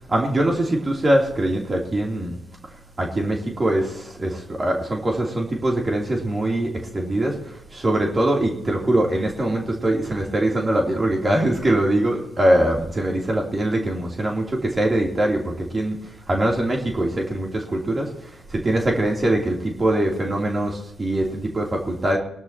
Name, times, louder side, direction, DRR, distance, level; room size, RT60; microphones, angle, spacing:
voice 1, 0.1-2.4 3.0-7.4 7.7-16.0 16.3-22.2, right 1 dB, 35° right, -1 dB, 3.2 m, -22 dB
22.0 x 12.5 x 2.9 m, 0.76 s
supercardioid pair, 50°, 0 cm